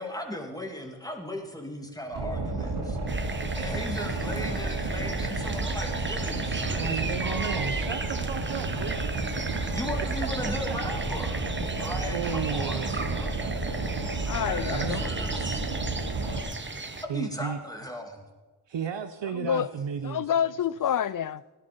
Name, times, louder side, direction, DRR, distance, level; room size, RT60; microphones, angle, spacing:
voice 1, 0.0-3.0 3.6-7.8 9.7-13.3 14.4-15.6 17.0-18.2, left 1 dB, 10° left, 2.5 m, -37 dB
Boat Water vehicle, 2.1-16.4, right 2 dB, 80° right, 2.7 m, -31 dB
sound 1, 3.1-17.0, right 3 dB, 25° right, 1.2 m, -36 dB
voice 2, 6.7-9.1 10.4-10.5 12.1-12.9 14.7-15.0 17.1-17.6 18.7-20.3, right 7 dB, 65° right, 0.9 m, -33 dB
voice 3, 14.3-15.1 19.3-19.7 20.0-21.4, left 9 dB, 45° left, 0.5 m, -28 dB
17.5 x 11.0 x 5.3 m
cardioid pair, 75°, 48 cm